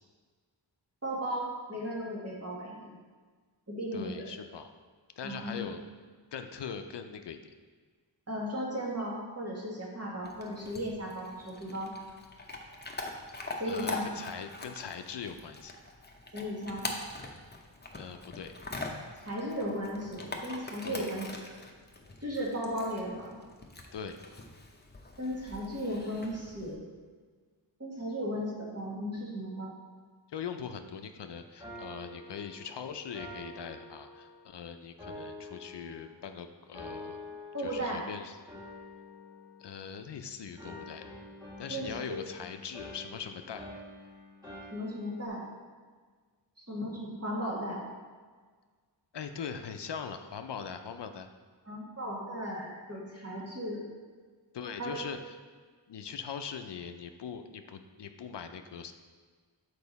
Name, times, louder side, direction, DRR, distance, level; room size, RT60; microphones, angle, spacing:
voice 1, 1.0-2.9 3.7-4.3 5.2-5.6 8.3-11.9 13.6-14.1 16.3-16.9 19.2-21.6 22.2-23.4 25.2-26.8 27.8-29.8 37.5-38.0 41.7-42.2 44.7-45.4 46.6-47.8 51.6-53.8 54.8-54.9, equal, 35° right, -4 dB, 1.7 m, -36 dB
voice 2, 3.9-4.7 5.2-5.8 6.3-7.4 13.7-15.8 17.9-18.5 20.8-21.1 23.9-24.2 30.3-37.2 37.6-38.4 39.6-41.0 41.6-43.7 49.1-51.3 54.5-55.3 55.9-58.9, left 7 dB, 65° left, 7 dB, 0.5 m, -41 dB
Chewing mastication / Dog, 10.2-26.7, left 2 dB, 25° left, 0.7 m, -43 dB
sound 1, 31.6-34.5 35.0-36.3 36.7-38.1 38.5-40.2 40.6-45.3, left 2 dB, 10° right, 1.8 m, -47 dB
6.8 x 4.7 x 4.1 m, 1.5 s
wide cardioid pair, 75°, 44 cm